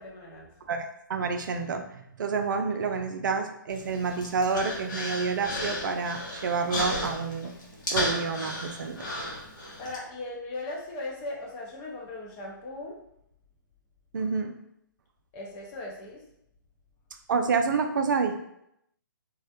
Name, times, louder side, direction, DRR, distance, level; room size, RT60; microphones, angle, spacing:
voice 1, 0.0-0.5 9.8-12.9 15.3-16.2, left 2 dB, 25° left, -2 dB, 0.6 m, -38 dB
voice 2, 0.7-7.6 7.9-9.1 14.1-14.6 17.3-18.4, right 5 dB, 65° right, 7 dB, 0.4 m, -29 dB
Human voice, 3.7-10.0, left 1 dB, 60° left, 0.9 m, -34 dB
2.4 x 2.0 x 2.8 m, 0.77 s
figure-of-eight pair, 135°, 11 cm